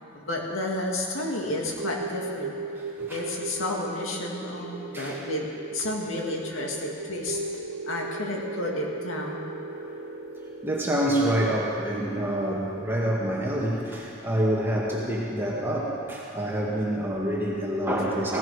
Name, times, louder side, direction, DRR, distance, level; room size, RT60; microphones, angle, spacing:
voice 1, 0.1-2.6 3.1-7.4 7.9-9.5, left 1 dB, 85° left, -1 dB, 2.3 m, -31 dB
sound 1, 1.8-12.9, right 3 dB, 75° right, 1.2 m, -37 dB
voice 2, 10.6-18.4, right 1 dB, 10° right, -4 dB, 1.9 m, -27 dB
17.0 x 16.5 x 5.0 m, 2.7 s
head